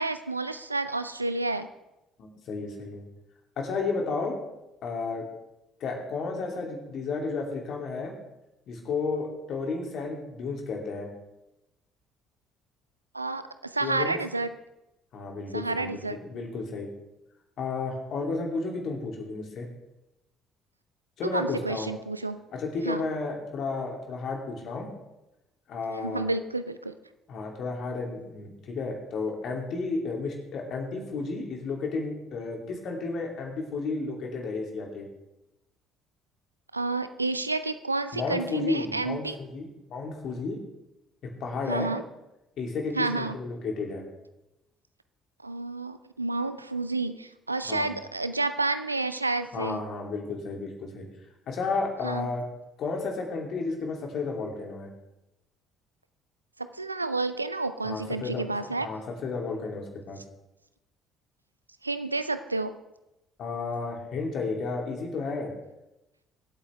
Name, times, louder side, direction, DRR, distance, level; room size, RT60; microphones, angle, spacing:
voice 1, 0.0-1.7 13.1-14.5 15.5-16.2 21.2-22.4 22.8-23.0 26.0-26.9 36.7-39.4 41.7-42.0 42.9-43.4 45.4-49.8 52.0-52.3 56.6-58.9 61.8-62.7, right 3 dB, 85° right, 12 dB, 0.4 m, -30 dB
voice 2, 2.2-3.0 3.6-4.3 4.8-5.2 5.8-8.1 8.7-11.1 13.8-14.2 15.1-16.9 17.6-19.7 21.2-21.9 22.5-24.9 25.7-26.3 27.3-35.0 38.1-40.6 41.4-41.9 42.6-44.0 47.6-47.9 49.4-51.0 51.5-52.4 52.8-54.9 57.8-60.2 63.4-65.5, left 3 dB, 50° left, 1 dB, 2.8 m, -32 dB
24.0 x 8.5 x 3.4 m, 0.93 s
figure-of-eight pair, 50°, 0 cm